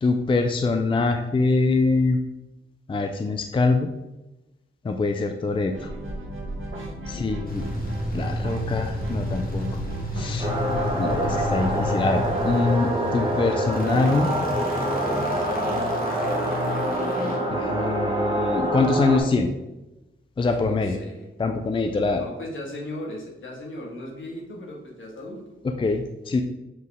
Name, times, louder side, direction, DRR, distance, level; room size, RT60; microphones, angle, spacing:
voice 1, 0.0-2.2 2.9-3.9 4.8-5.7 7.1-7.6 8.1-9.7 10.1-10.5 11.0-14.3 17.5-19.5 20.4-21.0 21.4-22.2 25.8-26.4, left 3 dB, 25° left, 6 dB, 0.4 m, -24 dB
sound 1, 5.7-12.6, right 1 dB, 70° right, 1.2 m, -35 dB
voice 2, 6.7-7.4 20.4-21.3 22.2-25.6, left 1 dB, 70° left, -1 dB, 1.6 m, -38 dB
sound 2, 7.4-18.6, left 1 dB, 45° left, 1.5 m, -32 dB
sound 3, 10.4-19.2, right 1 dB, 25° right, 1.4 m, -26 dB
7.6 x 3.9 x 3.6 m, 0.99 s
wide cardioid pair, 125°, 21 cm